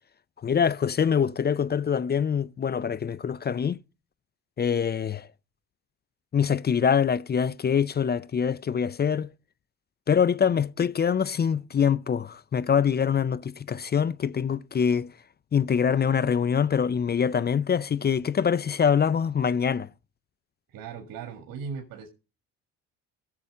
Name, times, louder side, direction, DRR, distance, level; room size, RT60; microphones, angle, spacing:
voice 1, 0.4-3.8 4.6-5.3 6.3-9.3 10.1-15.1 15.5-19.9, left 7 dB, 30° left, 0.5 m, -24 dB
voice 2, 15.9-16.2 20.7-22.1, right 6 dB, 75° right, 2.0 m, -39 dB
17.0 x 7.0 x 3.7 m
cardioid pair, 85°, 36 cm